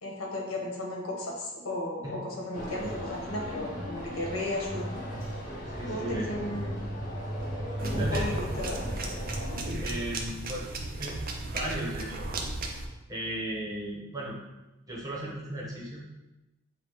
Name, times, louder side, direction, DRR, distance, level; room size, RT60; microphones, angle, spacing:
voice 1, 0.0-4.9 5.9-6.8 7.8-8.8, left 1 dB, 85° left, -1 dB, 1.1 m, -34 dB
sound 1, 2.5-9.6, equal, 40° left, 1.1 m, -36 dB
voice 2, 5.7-6.3 7.9-8.3 9.8-10.7 11.0-11.2 11.5-12.3 13.1-14.4 14.9-16.3, right 1 dB, 20° right, -5 dB, 1.1 m, -36 dB
sound 2, 7.8-12.8, right 2 dB, 45° right, 0.5 m, -35 dB
6.7 x 2.4 x 3.1 m, 1.0 s
head